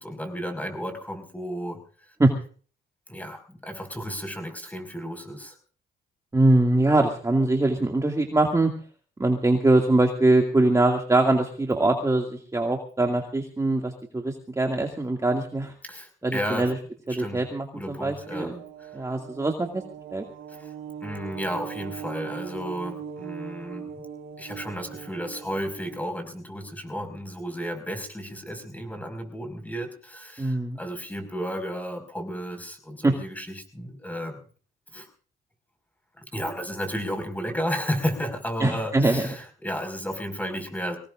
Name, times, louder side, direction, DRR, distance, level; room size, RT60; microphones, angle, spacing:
voice 1, 0.0-1.8 3.1-5.6 15.8-16.7 17.1-17.4 17.7-18.5 18.8-19.0 20.5-20.7 21.0-23.9 24.4-34.4 34.9-35.1 36.2-41.0, equal, 10° left, 6 dB, 5.4 m, -33 dB
voice 2, 6.3-8.7 9.2-15.7 16.2-16.8 17.1-18.6 18.9-19.8 20.1-20.2 30.4-30.8 33.0-33.1 38.6-39.3, right 2 dB, 15° right, 2 dB, 2.3 m, -22 dB
sound 1, 18.1-26.0, right 8 dB, 85° right, 2.6 m, -40 dB
24.0 x 18.5 x 2.5 m, 0.41 s
cardioid pair, 90°, 20 cm